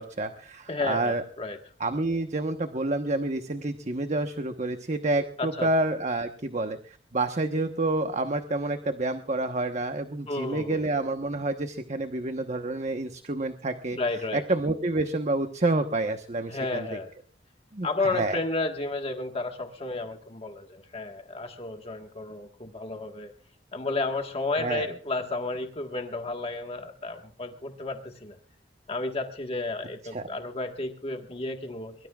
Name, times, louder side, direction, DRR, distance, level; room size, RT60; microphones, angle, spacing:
voice 1, 0.0-1.2 1.8-14.0 14.3-16.9 17.7-18.4 24.6-24.9 30.1-30.3, right 2 dB, 40° right, 7 dB, 1.1 m, -28 dB
voice 2, 0.7-1.6 5.4-5.7 10.3-10.8 13.9-14.4 16.5-17.1 17.8-23.3 23.7-28.4 28.9-31.9, left 2 dB, 35° left, 4 dB, 1.6 m, -32 dB
23.5 x 23.0 x 2.4 m, 0.41 s
head